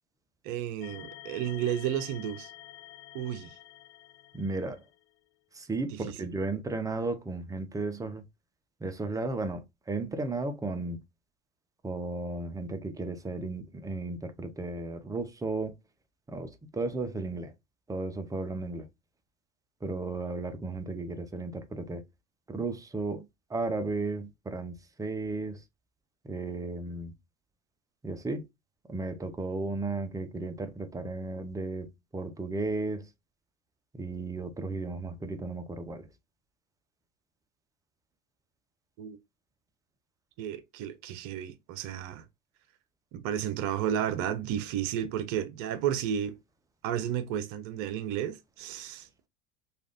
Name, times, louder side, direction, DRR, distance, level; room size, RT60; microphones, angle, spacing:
voice 1, 0.4-2.5 3.1-3.6 6.0-6.1 39.0-39.2 40.4-42.2 43.1-46.4 46.8-49.1, right 10 dB, 55° right, 0.7 m, -32 dB
sound 1, 0.8-5.1, left 13 dB, 45° left, 0.5 m, -49 dB
voice 2, 4.3-4.8 5.5-8.2 8.8-11.0 11.8-15.7 16.3-17.5 17.9-18.9 19.8-22.0 22.5-25.6 26.2-27.1 28.0-28.5 28.9-33.1 33.9-36.1, right 3 dB, 10° right, 0.5 m, -34 dB
3.3 x 2.4 x 2.4 m
hypercardioid pair, 85°, 37 cm